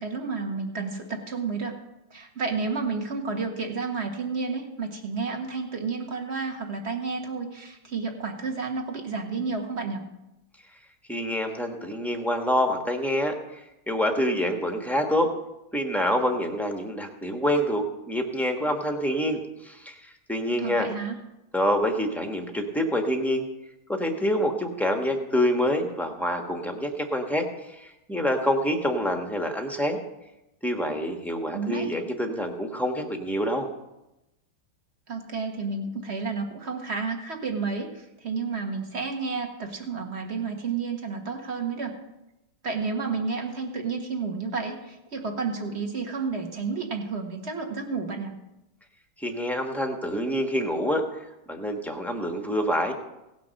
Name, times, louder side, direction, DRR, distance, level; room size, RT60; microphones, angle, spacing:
voice 1, 0.0-1.8 2.1-10.1 20.6-21.2 31.5-31.9 35.1-41.9 42.6-48.3, right 4 dB, 35° right, 3 dB, 1.6 m, -31 dB
voice 2, 11.1-15.3 15.7-20.9 21.5-23.5 23.9-30.0 30.6-33.7 49.2-52.9, equal, ahead, 3 dB, 0.8 m, -27 dB
17.5 x 6.0 x 6.4 m, 0.93 s
omnidirectional pair, 2.3 m